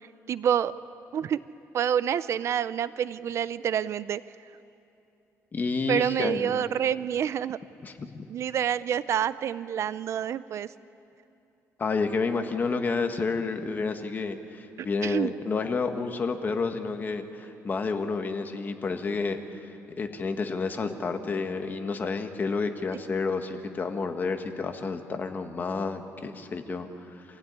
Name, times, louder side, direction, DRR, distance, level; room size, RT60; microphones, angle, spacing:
voice 1, 0.3-0.7 1.1-1.4 1.7-4.2 5.9-7.6 8.3-10.7 14.8-15.3, right 9 dB, 55° right, 16 dB, 0.5 m, -27 dB
voice 2, 5.5-6.6 7.8-8.3 11.8-27.2, left 4 dB, 30° left, 6 dB, 1.6 m, -30 dB
26.5 x 16.5 x 9.7 m, 2.7 s
cardioid pair, 130°, 6 cm